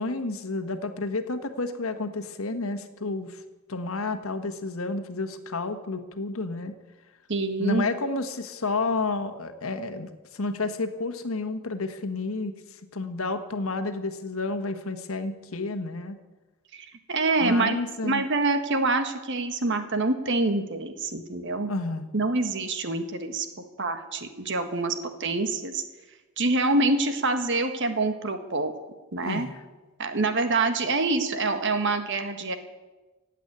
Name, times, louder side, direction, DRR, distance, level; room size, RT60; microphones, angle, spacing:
voice 1, 0.0-3.4 3.7-6.7 7.6-16.2 17.4-18.2 21.7-22.1 29.2-29.6, left 3 dB, 75° left, 8 dB, 1.4 m, -31 dB
voice 2, 7.3-7.8 16.7-17.8 18.0-21.7 22.1-23.5 23.8-24.9 25.2-25.8 26.4-28.7 29.1-29.5 30.0-32.6, right 3 dB, 55° right, 8 dB, 1.5 m, -26 dB
16.0 x 8.3 x 9.6 m, 1.2 s
head